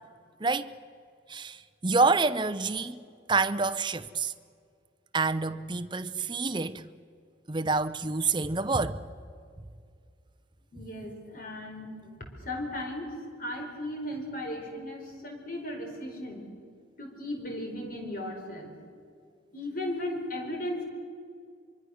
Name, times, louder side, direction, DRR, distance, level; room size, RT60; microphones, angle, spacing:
voice 1, 0.4-0.7 1.3-3.0 3.3-4.3 5.1-6.8 7.5-9.0, right 3 dB, 25° right, 0.7 m, -27 dB
voice 2, 10.7-16.5 17.0-18.7 19.5-20.8, left 1 dB, 45° left, 4.6 m, -36 dB
24.5 x 24.5 x 6.5 m
head